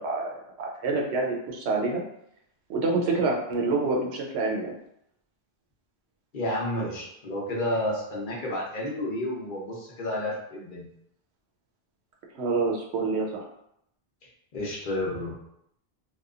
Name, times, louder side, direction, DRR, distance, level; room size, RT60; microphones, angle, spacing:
voice 1, 0.0-2.0 2.7-4.7 12.3-13.5, right 3 dB, 85° right, 0 dB, 0.9 m, -27 dB
voice 2, 6.3-10.9 14.5-15.3, left 1 dB, 55° left, -4 dB, 0.8 m, -31 dB
2.8 x 2.3 x 2.4 m, 0.75 s
omnidirectional pair, 1.1 m